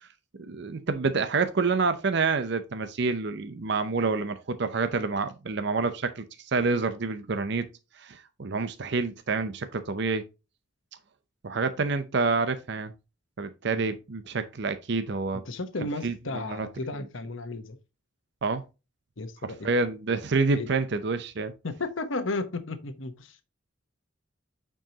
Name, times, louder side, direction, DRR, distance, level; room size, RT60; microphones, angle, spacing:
voice 1, 0.5-7.6 8.0-10.2 11.4-12.9 13.4-15.4 16.0-16.7 18.4-18.6 19.6-21.5, right 4 dB, 60° right, 0.6 m, -28 dB
voice 2, 15.4-17.8 19.2-19.7 20.5-20.7 21.6-23.4, left 2 dB, 75° left, 1.0 m, -34 dB
8.9 x 4.6 x 2.9 m
head